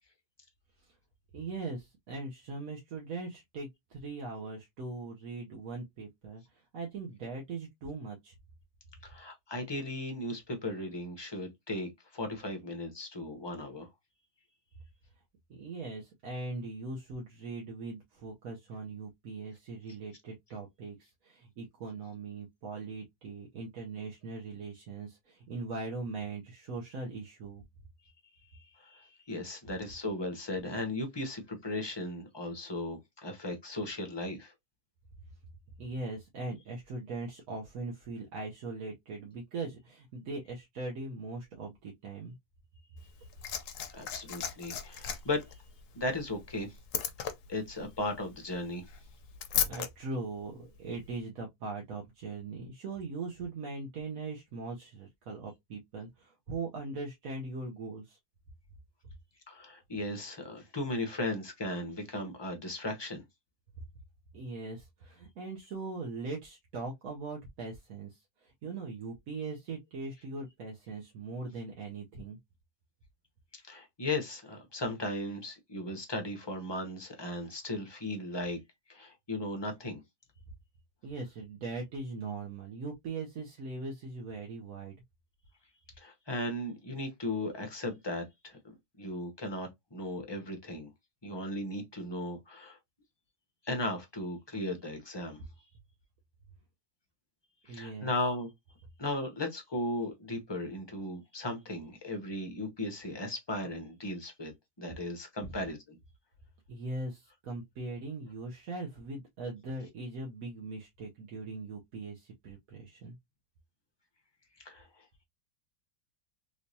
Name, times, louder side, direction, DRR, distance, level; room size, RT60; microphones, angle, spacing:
voice 1, 1.3-8.3 15.5-27.6 35.8-42.3 49.6-58.2 64.3-72.4 81.0-85.0 97.7-98.1 106.7-113.2, right 3 dB, 60° right, 1.2 m, -40 dB
voice 2, 9.0-13.9 28.7-34.5 43.9-45.4 45.9-46.8 47.5-48.9 59.5-63.2 73.5-78.6 78.9-80.0 86.0-90.9 91.2-92.8 93.6-95.7 97.6-98.5 99.0-104.5 104.8-106.0 114.6-115.0, left 1 dB, 25° left, 0.5 m, -36 dB
Liquid, 43.0-49.9 51.0-51.1, left 8 dB, 65° left, 0.9 m, -37 dB
3.3 x 3.1 x 2.6 m
omnidirectional pair, 1.7 m